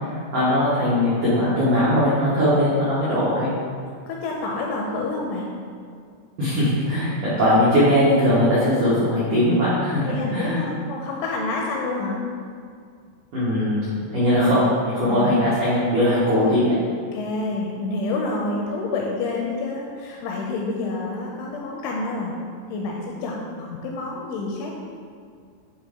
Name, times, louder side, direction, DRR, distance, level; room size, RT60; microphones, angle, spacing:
voice 1, 0.3-3.6 6.4-10.6 13.3-13.8 14.1-16.7, left 1 dB, 85° right, -11 dB, 1.8 m, -20 dB
voice 2, 4.1-5.5 10.1-12.3 15.0-15.3 17.1-22.4 22.7-24.8, left 3 dB, 85° left, -1 dB, 2.8 m, -28 dB
10.5 x 3.6 x 3.6 m, 2.2 s
omnidirectional pair, 5.9 m